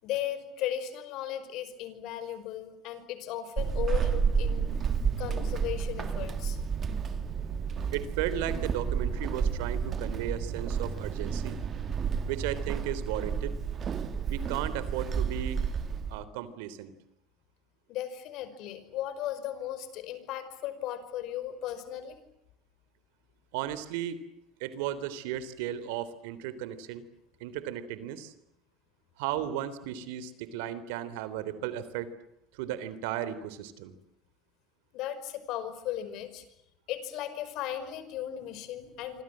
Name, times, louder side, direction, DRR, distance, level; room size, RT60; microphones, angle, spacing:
voice 1, 0.0-4.7 5.2-6.6 17.9-22.2 34.9-36.4 36.9-39.2, left 11 dB, 55° left, 12 dB, 5.3 m, -36 dB
Walk footsteps / Squeak, 3.6-16.2, right 6 dB, 30° right, 1.9 m, -31 dB
voice 2, 7.9-11.6 12.3-13.5 14.3-15.6 16.1-16.9 23.5-24.2 24.6-27.0 27.4-28.3 29.2-32.1 32.5-33.9, right 11 dB, 85° right, 15 dB, 3.5 m, -35 dB
27.5 x 26.0 x 7.7 m, 0.81 s
cardioid pair, 155°, 0 cm